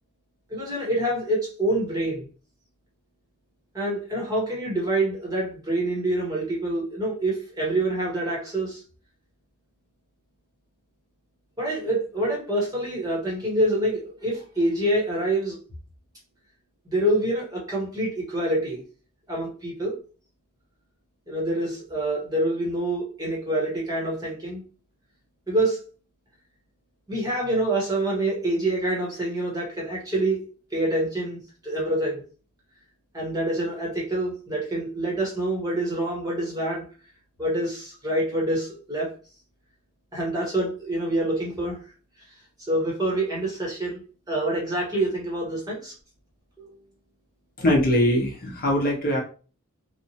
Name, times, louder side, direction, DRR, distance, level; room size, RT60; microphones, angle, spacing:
voice 1, 0.5-2.3 3.7-8.8 11.6-15.6 16.9-18.8 19.3-19.9 21.3-24.6 25.5-25.8 27.1-30.4 30.7-32.2 33.1-36.9 37.4-39.1 40.1-41.8 42.7-44.0 44.3-45.9 46.6-46.8, right 1 dB, 15° right, -3 dB, 0.8 m, -26 dB
voice 2, 47.6-49.2, left 1 dB, 45° left, -1 dB, 0.6 m, -22 dB
2.9 x 2.0 x 2.7 m, 0.38 s
head